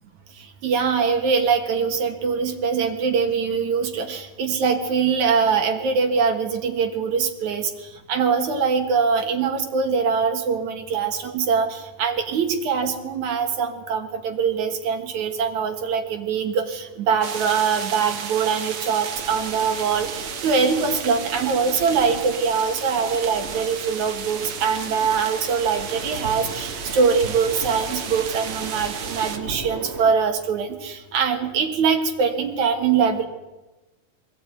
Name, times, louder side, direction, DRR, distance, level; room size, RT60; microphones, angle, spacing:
voice 1, 0.6-7.7 8.1-33.3, right 5 dB, 75° right, 5 dB, 3.0 m, -23 dB
sound 1, 17.2-29.4, right 7 dB, 55° right, 1.9 m, -34 dB
sound 2, 19.1-30.1, right 2 dB, 30° right, 1.3 m, -38 dB
20.5 x 15.0 x 9.5 m, 1.1 s
omnidirectional pair, 3.4 m